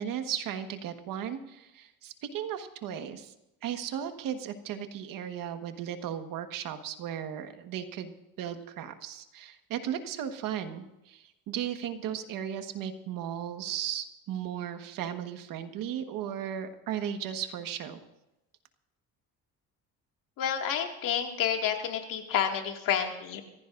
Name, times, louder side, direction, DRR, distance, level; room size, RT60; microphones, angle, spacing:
voice 1, 0.0-3.3 3.6-18.0, right 9 dB, 80° right, 7 dB, 1.6 m, -36 dB
voice 2, 20.4-23.4, left 8 dB, 75° left, 3 dB, 2.3 m, -29 dB
26.0 x 15.5 x 2.6 m, 0.92 s
cardioid pair, 130°, 33 cm